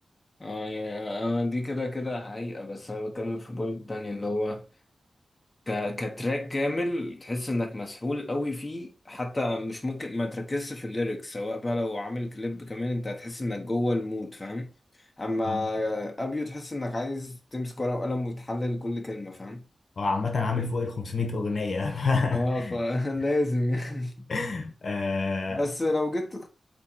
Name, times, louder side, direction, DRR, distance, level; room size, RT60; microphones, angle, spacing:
voice 1, 0.4-4.6 5.7-14.7 15.2-19.6 22.3-24.3 25.5-26.5, left 1 dB, 20° left, 1.1 m, -30 dB
voice 2, 20.0-22.7 24.3-25.6, left 4 dB, 55° left, 1.1 m, -28 dB
8.1 x 3.1 x 4.4 m
wide cardioid pair, 125°, 0 cm